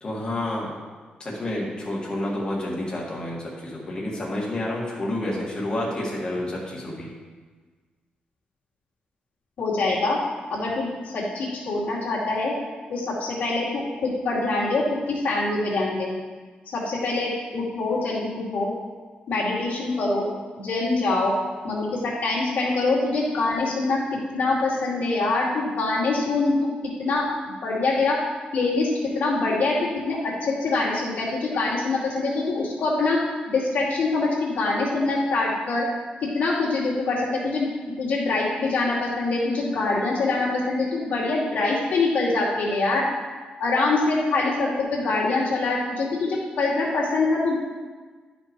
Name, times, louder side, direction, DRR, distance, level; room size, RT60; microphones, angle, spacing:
voice 1, 0.0-0.7 1.2-7.1, left 1 dB, 30° left, -4 dB, 2.0 m, -29 dB
voice 2, 9.6-10.2 10.5-12.5 12.9-16.1 16.7-18.7 19.3-20.3 20.6-21.3 21.6-24.0 24.3-26.6 27.0-27.2 27.6-28.2 28.5-33.2 33.5-35.8 36.3-37.7 38.0-43.0 43.6-47.5, left 3 dB, 65° left, -6 dB, 2.5 m, -24 dB
12.0 x 5.3 x 3.1 m, 1.4 s
wide cardioid pair, 165°, 3 cm